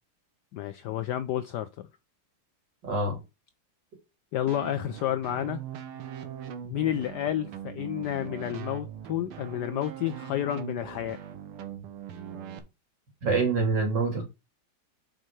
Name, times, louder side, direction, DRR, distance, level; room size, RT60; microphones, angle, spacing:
voice 1, 0.5-1.9 4.3-5.6 6.7-11.2, left 11 dB, 90° left, 0.9 m, -30 dB
voice 2, 2.8-3.2 13.2-14.2, right 3 dB, 55° right, 3.2 m, -25 dB
sound 1, 4.5-12.6, right 9 dB, 80° right, 1.8 m, -41 dB
5.9 x 5.1 x 4.7 m
omnidirectional pair, 2.4 m